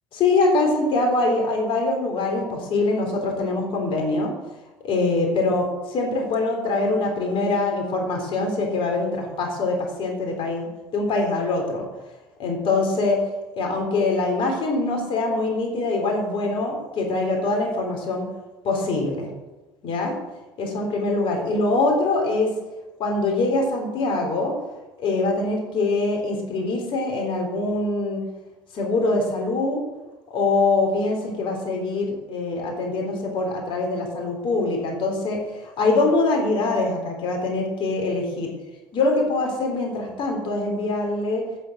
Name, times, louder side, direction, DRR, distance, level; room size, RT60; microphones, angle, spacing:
voice 1, 0.1-4.3 4.8-11.9 12.4-13.2 13.6-18.2 18.6-19.3 19.8-20.1 20.6-22.5 23.0-24.6 25.0-28.2 28.7-29.9 30.3-38.5 38.9-41.5, left 3 dB, 50° left, 1 dB, 3.7 m, -23 dB
8.9 x 8.3 x 7.7 m, 1.1 s
hypercardioid pair, 70°, 11 cm